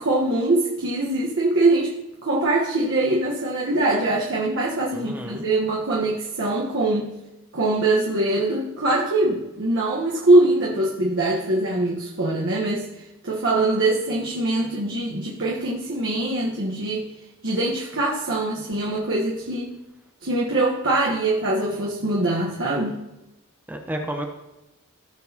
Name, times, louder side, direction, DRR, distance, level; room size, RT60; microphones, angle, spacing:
voice 1, 0.0-1.9 2.2-7.1 7.5-12.9 13.2-17.1 17.4-19.7 20.2-23.0, right 2 dB, 60° right, -4 dB, 1.3 m, -23 dB
voice 2, 4.9-5.4 23.7-24.3, right 1 dB, 10° right, 3 dB, 0.8 m, -31 dB
17.0 x 6.3 x 2.9 m, 0.98 s
head